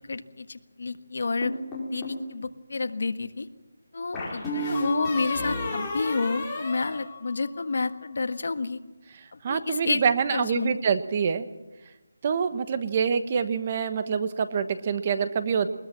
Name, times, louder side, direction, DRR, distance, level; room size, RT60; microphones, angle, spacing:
voice 1, 0.0-1.5 1.9-3.5 3.9-8.8 9.3-10.0 10.3-10.7, left 3 dB, 60° left, 10 dB, 1.5 m, -30 dB
sound 1, 1.4-2.2 4.1-7.8, left 2 dB, 10° left, 4.9 m, -32 dB
voice 2, 9.4-11.5 12.2-15.7, right 6 dB, 25° right, 11 dB, 1.2 m, -26 dB
21.0 x 20.5 x 7.6 m, 1.1 s
figure-of-eight pair, 170°, 0 cm